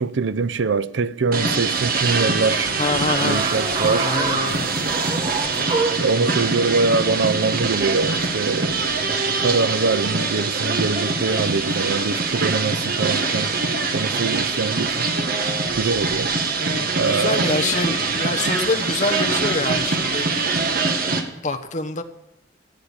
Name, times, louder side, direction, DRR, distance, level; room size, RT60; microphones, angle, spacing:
voice 1, 0.0-2.7 3.2-4.1 6.0-13.5 13.9-15.1 15.7-16.3 16.9-17.4, right 4 dB, 85° right, 0.5 m, -23 dB
sound 1, 1.3-21.2, right 4 dB, 55° right, 1.6 m, -23 dB
voice 2, 2.8-3.4 4.0-4.7 12.6-13.0 17.0-20.3 21.0-21.1 21.4-22.0, left 3 dB, 45° left, 1.1 m, -26 dB
sound 2, 3.1-6.1, right 3 dB, 30° right, 1.2 m, -26 dB
14.5 x 8.9 x 8.7 m
head